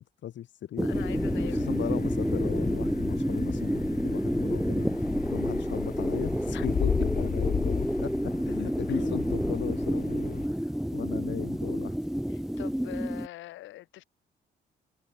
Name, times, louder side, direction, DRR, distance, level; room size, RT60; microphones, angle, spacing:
voice 1, 0.0-0.9 1.4-4.9 5.3-11.9, left 11 dB, 75° left, 5.6 m, -37 dB
voice 2, 0.8-1.8 6.5-6.7 8.9-9.3 12.3-14.0, left 15 dB, 90° left, 7.3 m, -43 dB
sound 1, 0.8-13.3, equal, ahead, 2.3 m, -29 dB
sound 2, 0.9-10.5, left 7 dB, 50° left, 3.4 m, -34 dB
cardioid pair, 80°, 19 cm